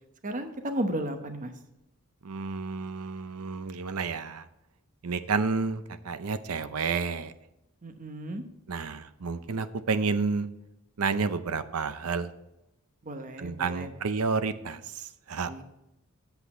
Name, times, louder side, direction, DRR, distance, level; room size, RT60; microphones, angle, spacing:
voice 1, 0.2-1.5 7.8-8.4 13.0-13.9 15.5-15.6, right 1 dB, 35° right, 7 dB, 0.9 m, -34 dB
voice 2, 2.2-4.4 5.0-7.3 8.7-10.5 11.0-12.3 13.4-15.5, right 4 dB, 75° right, 12 dB, 0.6 m, -30 dB
8.3 x 8.2 x 4.3 m, 0.89 s
head